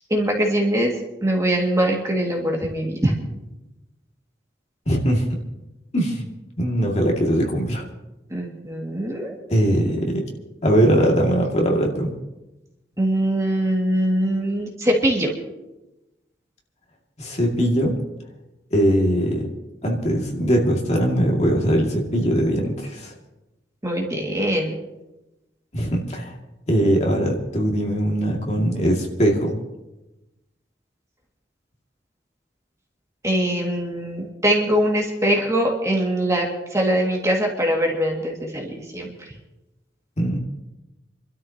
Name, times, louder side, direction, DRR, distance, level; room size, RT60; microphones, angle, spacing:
voice 1, 0.1-0.9 1.2-3.1 8.3-9.3 13.0-15.3 23.8-24.7 33.2-39.1, right 1 dB, 20° right, -1 dB, 2.1 m, -22 dB
voice 2, 4.9-5.4 5.9-6.3 6.6-7.8 9.5-10.2 10.6-12.1 17.2-17.9 18.7-19.5 19.8-23.1 25.7-26.3 26.7-29.6 40.2-40.4, equal, 40° left, -1 dB, 2.3 m, -21 dB
29.5 x 13.0 x 2.9 m, 0.99 s
head